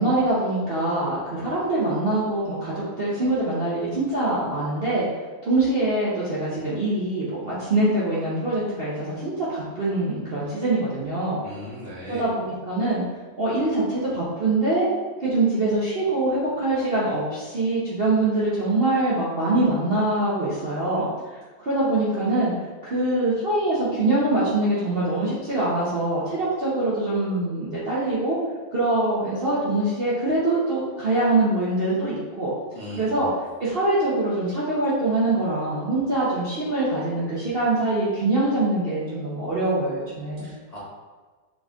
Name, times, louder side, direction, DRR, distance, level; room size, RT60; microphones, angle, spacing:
voice 1, 0.0-5.1 5.5-11.4 12.1-13.0 13.4-14.9 15.2-21.1 21.6-22.5 22.8-28.4 28.7-32.5 32.9-33.3 33.6-40.5, right 2 dB, 45° right, -9 dB, 0.7 m, -24 dB
voice 2, 11.4-12.2 32.7-33.3 40.4-40.8, left 1 dB, 35° left, -9 dB, 0.7 m, -38 dB
3.9 x 3.7 x 3.5 m, 1.4 s
omnidirectional pair, 2.1 m